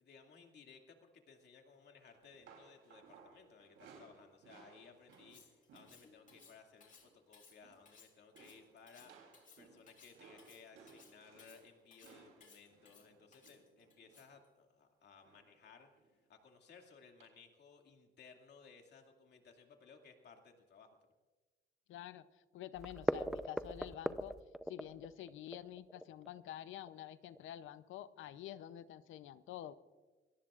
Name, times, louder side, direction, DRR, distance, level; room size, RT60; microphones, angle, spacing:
voice 1, 0.0-16.0 16.3-20.9, left 5 dB, 60° left, 3 dB, 2.4 m, -60 dB
sound 1, 2.1-6.6 6.9-7.2 7.5-8.0 8.3-14.4 15.2-15.6 15.9-16.1 17.2-17.3, right 5 dB, 90° right, 3.3 m, -62 dB
Cutlery silverware, 5.1-14.5, left 5 dB, 40° left, 2.8 m, -63 dB
voice 2, 21.9-24.4 24.7-29.7, left 12 dB, 80° left, 14 dB, 0.7 m, -48 dB
sound 2, 22.7-27.4 27.7-27.8 28.2-28.3 28.6-28.7, equal, ahead, 0.6 m, -39 dB
25.5 x 18.0 x 2.5 m, 1.3 s
cardioid pair, 90°, 20 cm